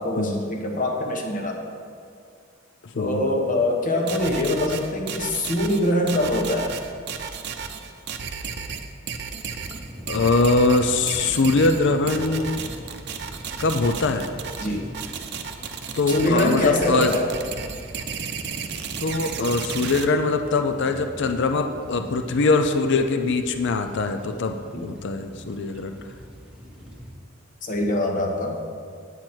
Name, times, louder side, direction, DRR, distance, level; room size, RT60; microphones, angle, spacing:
voice 1, 0.0-1.7 2.9-6.7 12.1-12.4 14.6-14.8 16.1-17.3 24.7-24.8 27.6-28.6, left 1 dB, 45° left, 2 dB, 1.2 m, -24 dB
voice 2, 2.8-3.2 10.1-12.6 13.6-14.3 15.9-17.1 19.0-24.6 24.8-26.0, left 3 dB, 60° left, 7 dB, 0.5 m, -22 dB
sound 1, 4.1-20.0, right 6 dB, 60° right, 0.6 m, -33 dB
sound 2, 9.6-27.1, equal, 5° right, 1.2 m, -42 dB
9.1 x 8.0 x 4.4 m, 2.2 s
head